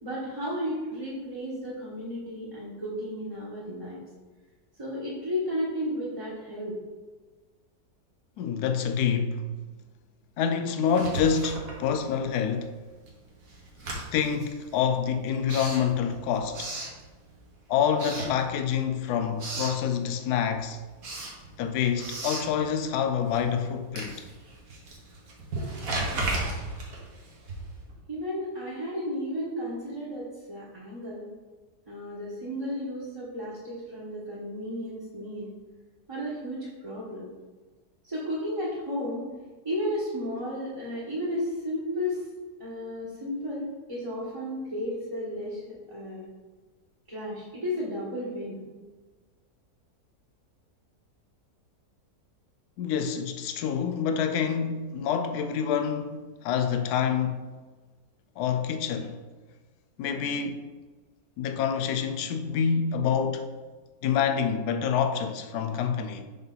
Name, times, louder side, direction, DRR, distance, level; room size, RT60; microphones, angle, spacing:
voice 1, 0.0-4.0 4.8-6.8 28.1-31.3 31.9-35.5 36.1-37.3 38.0-39.3 39.6-42.3 42.6-46.3 47.1-48.6, equal, 20° right, 1.3 m, -33 dB
voice 2, 8.4-9.5 10.4-12.7 14.1-16.7 17.7-20.8 21.6-24.2 52.8-57.4 58.4-59.2 60.0-60.7 61.4-63.5 64.0-66.2, left 7 dB, 80° left, 1.1 m, -27 dB
Writing, 10.8-12.4 12.7-17.5 17.9-18.9 19.2-19.8 20.3-27.9, right 2 dB, 65° right, 1.6 m, -36 dB
5.5 x 5.5 x 3.9 m
omnidirectional pair, 1.7 m